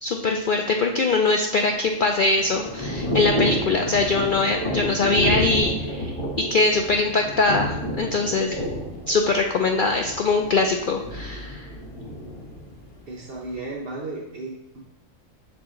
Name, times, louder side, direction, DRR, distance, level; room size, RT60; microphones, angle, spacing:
voice 1, 0.0-6.1 6.5-8.6 9.1-11.7, left 3 dB, 75° left, 3 dB, 0.4 m, -22 dB
Thunder / Rain, 1.6-13.5, equal, 25° left, 1.0 m, -30 dB
voice 2, 13.1-14.8, right 2 dB, 50° right, -4 dB, 1.0 m, -35 dB
6.5 x 4.7 x 3.7 m, 0.92 s
omnidirectional pair, 1.4 m